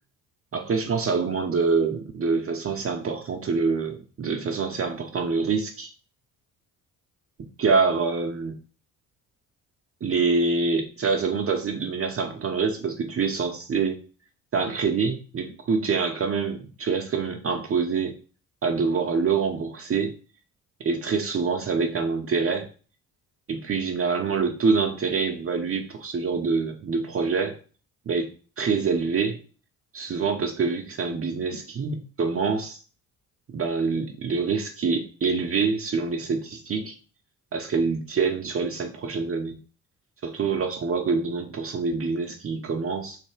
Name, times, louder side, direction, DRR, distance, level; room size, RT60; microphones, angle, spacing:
voice 1, 0.5-5.9 7.6-8.5 10.0-14.0 14.5-18.1 18.6-20.1 20.8-22.7 23.5-27.6 28.1-28.3 28.6-29.4 29.9-32.8 33.5-36.9 37.5-39.6 40.2-43.2, right 5 dB, 30° right, 3 dB, 0.7 m, -25 dB
3.3 x 3.1 x 4.5 m, 0.38 s
figure-of-eight pair, 45°, 46 cm